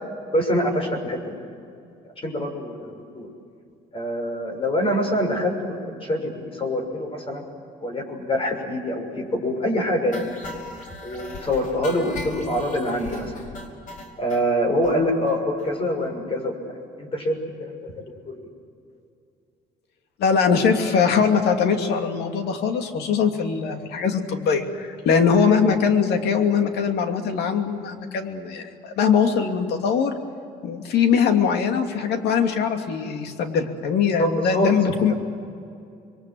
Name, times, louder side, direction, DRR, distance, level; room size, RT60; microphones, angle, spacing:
voice 1, 0.3-1.4 2.0-3.3 3.9-7.4 7.8-10.3 11.0-13.3 14.2-16.5 17.0-18.4 34.2-34.7 35.1-35.2, equal, 35° left, 3 dB, 6.2 m, -25 dB
sound 1, 10.1-14.4 14.8-14.9 15.3-15.4 15.6-15.7 16.0-16.1, left 2 dB, 50° left, 5.1 m, -38 dB
voice 2, 20.2-30.1 30.6-35.1, left 6 dB, 75° left, 5 dB, 2.8 m, -21 dB
27.0 x 22.5 x 7.8 m, 2.5 s
cardioid pair, 110°, 17 cm